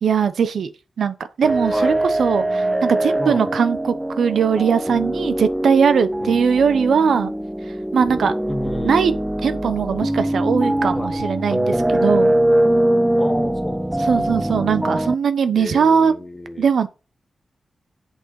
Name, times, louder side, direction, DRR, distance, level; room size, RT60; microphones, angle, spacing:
voice 1, 0.0-0.7 1.0-7.3 7.9-8.3 8.8-9.1 9.4-12.4 14.1-16.1 16.6-16.9, right 6 dB, 80° right, 0.9 m, -20 dB
sound 1, 1.4-15.1, right 1 dB, 5° right, 0.5 m, -22 dB
voice 2, 1.7-2.1 3.2-3.5 6.2-6.4 8.5-9.1 10.9-11.2 13.2-14.3 15.6-16.7, left 1 dB, 15° left, 1.8 m, -31 dB
8.4 x 6.7 x 4.9 m
wide cardioid pair, 135°, 0 cm